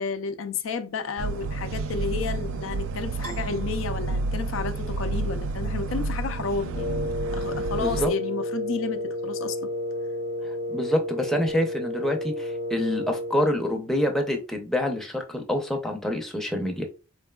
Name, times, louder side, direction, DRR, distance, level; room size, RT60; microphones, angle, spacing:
voice 1, 0.0-9.7, left 4 dB, 65° left, 0.4 m, -32 dB
sound 1, 1.2-8.1, right 3 dB, 65° right, 0.3 m, -30 dB
Piano, 3.2-4.8, right 3 dB, 85° right, 1.1 m, -44 dB
Wind instrument woodwind instrument, 6.7-13.5, left 1 dB, 35° left, 0.8 m, -31 dB
voice 2, 7.8-8.1 10.4-16.9, left 1 dB, ahead, 0.6 m, -27 dB
4.4 x 3.2 x 2.2 m
head